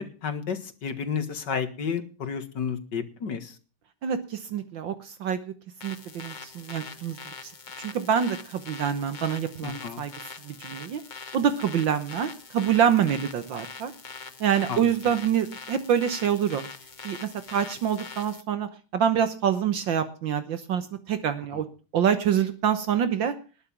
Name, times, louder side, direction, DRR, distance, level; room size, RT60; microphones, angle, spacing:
voice 1, 0.0-3.6 9.6-10.0 14.7-14.9 21.5-21.6, left 6 dB, 60° left, 10 dB, 2.4 m, -32 dB
voice 2, 4.0-5.4 5.8-7.2 7.4-7.5 7.8-10.1 10.4-11.0 11.3-13.9 14.4-16.7 17.0-21.7 21.9-23.4, right 8 dB, 65° right, 11 dB, 1.8 m, -26 dB
sound 1, 5.8-18.4, left 5 dB, 35° left, 0.8 m, -43 dB
20.0 x 7.0 x 7.2 m, 0.37 s
omnidirectional pair, 2.2 m